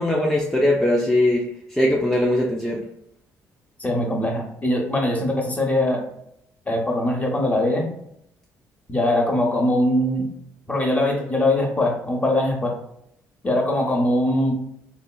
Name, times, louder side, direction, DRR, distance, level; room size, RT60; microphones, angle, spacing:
voice 1, 0.0-1.4 1.7-2.8, left 1 dB, 5° left, -2 dB, 0.4 m, -20 dB
voice 2, 3.8-6.1 6.7-7.9 8.9-10.2 10.7-12.8 13.4-14.5, left 1 dB, 20° left, 1 dB, 0.8 m, -21 dB
2.8 x 2.3 x 2.2 m, 0.74 s
supercardioid pair, 75°, 7 cm